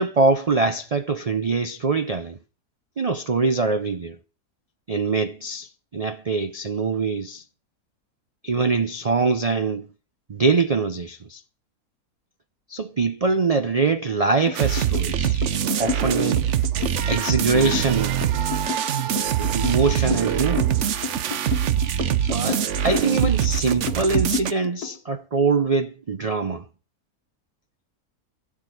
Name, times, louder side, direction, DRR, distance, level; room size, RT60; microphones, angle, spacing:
voice 1, 0.0-2.4 3.0-4.2 4.9-7.4 8.4-9.9 10.3-11.4 12.7-15.4 15.8-16.4 17.1-18.2 19.4-20.7 22.3-26.6, right 4 dB, 75° right, 0.3 m, -23 dB
sound 1, 14.5-25.0, left 5 dB, 80° left, 1.7 m, -31 dB
sound 2, 14.5-24.5, right 10 dB, 55° right, 1.0 m, -23 dB
16.0 x 6.2 x 7.8 m
omnidirectional pair, 1.6 m